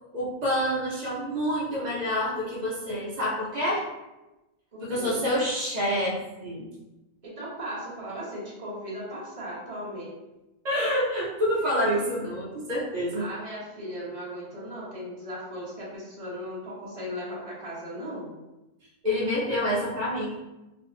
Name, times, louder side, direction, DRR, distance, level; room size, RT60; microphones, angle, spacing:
voice 1, 0.1-3.8 4.8-6.7 10.6-13.3 19.0-20.3, equal, 75° right, -7 dB, 0.4 m, -27 dB
voice 2, 4.7-5.2 7.2-10.1 13.1-18.3, equal, 35° right, -6 dB, 0.6 m, -37 dB
2.7 x 2.5 x 2.6 m, 1.0 s
omnidirectional pair, 1.6 m